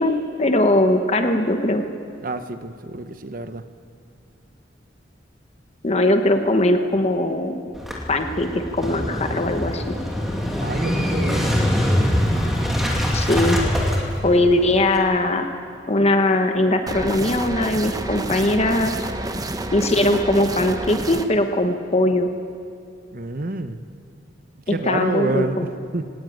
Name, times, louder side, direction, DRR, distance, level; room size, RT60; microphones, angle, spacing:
voice 1, 0.0-1.8 5.8-7.6 8.1-9.9 13.1-13.6 14.2-15.4 15.9-18.9 19.7-22.3 24.7-25.6, left 1 dB, 35° left, 6 dB, 1.2 m, -20 dB
voice 2, 2.2-3.6 10.6-11.5 23.1-23.8 24.7-26.1, right 2 dB, 50° right, 9 dB, 1.0 m, -28 dB
Motorcycle / Engine starting, 7.8-15.0, equal, ahead, 2.5 m, -23 dB
sound 1, 16.9-21.3, right 1 dB, 20° right, 0.9 m, -29 dB
19.0 x 17.5 x 9.1 m, 2.3 s
head